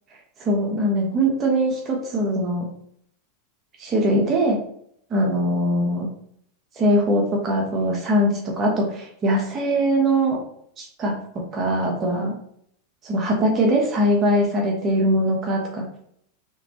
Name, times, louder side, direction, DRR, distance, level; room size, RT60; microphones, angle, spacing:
voice 1, 0.4-2.7 3.8-4.6 5.1-6.1 6.7-10.4 10.8-11.1 11.5-12.3 13.0-16.0, equal, 35° right, -1 dB, 1.2 m, -21 dB
4.3 x 3.7 x 3.0 m, 0.67 s
hypercardioid pair, 110°, 0 cm